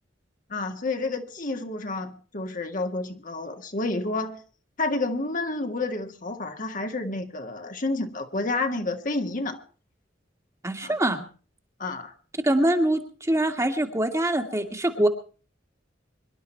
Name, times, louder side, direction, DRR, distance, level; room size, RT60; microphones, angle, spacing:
voice 1, 0.5-4.4 4.8-9.6 10.8-11.0 11.8-12.1, left 2 dB, 45° left, 5 dB, 1.8 m, -30 dB
voice 2, 10.6-11.2 12.4-15.1, right 1 dB, 15° right, 5 dB, 1.9 m, -24 dB
25.0 x 12.0 x 4.5 m, 0.40 s
head